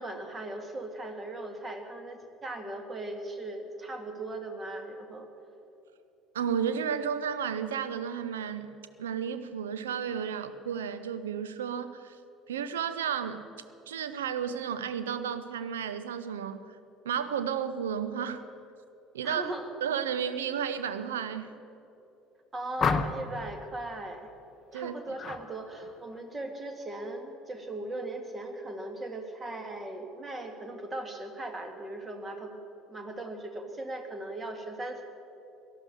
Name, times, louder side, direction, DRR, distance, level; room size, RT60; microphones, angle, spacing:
voice 1, 0.0-5.3 19.2-19.7 22.5-24.3 24.7-32.6 32.9-35.0, right 2 dB, 25° right, 5 dB, 2.0 m, -38 dB
voice 2, 6.3-8.7 9.0-12.2 12.5-13.4 13.9-16.8 17.0-18.4 19.1-19.5 19.8-21.5 24.7-25.0, right 8 dB, 70° right, 11 dB, 0.7 m, -32 dB
sound 1, 22.8-23.4 25.2-25.4 25.8-26.2, left 5 dB, 35° left, 0.8 m, -30 dB
17.5 x 12.0 x 6.7 m, 2.8 s
figure-of-eight pair, 60°, 0 cm